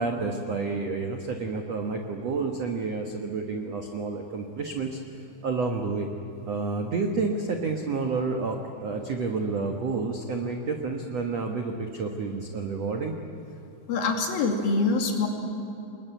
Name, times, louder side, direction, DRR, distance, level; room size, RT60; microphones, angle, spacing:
voice 1, 0.0-6.1 6.5-13.2, right 4 dB, 75° right, 3 dB, 1.4 m, -30 dB
voice 2, 13.9-15.3, left 4 dB, 55° left, 2 dB, 4.2 m, -24 dB
29.5 x 21.5 x 9.2 m, 3.0 s
omnidirectional pair, 5.3 m